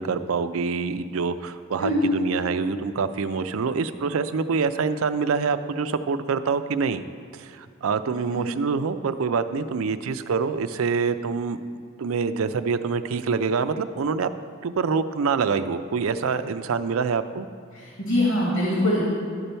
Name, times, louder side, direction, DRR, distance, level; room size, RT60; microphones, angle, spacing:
voice 1, 0.0-7.0 7.3-11.6 12.0-14.3 14.6-17.5, right 5 dB, 85° right, 11 dB, 0.4 m, -26 dB
voice 2, 17.7-19.0, left 1 dB, 85° left, -5 dB, 2.2 m, -23 dB
11.5 x 6.8 x 4.4 m, 2.2 s
head